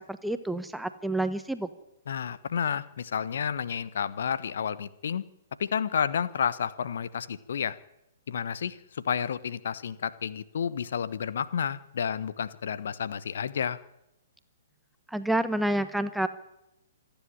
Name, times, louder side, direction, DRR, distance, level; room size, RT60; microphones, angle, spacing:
voice 1, 0.0-1.7 15.1-16.3, right 1 dB, ahead, 11 dB, 1.1 m, -29 dB
voice 2, 2.1-5.2 5.6-7.8 8.3-8.8 9.0-13.8, left 7 dB, 60° left, 17 dB, 1.1 m, -30 dB
26.5 x 10.5 x 9.9 m, 0.91 s
figure-of-eight pair, 120°, 0 cm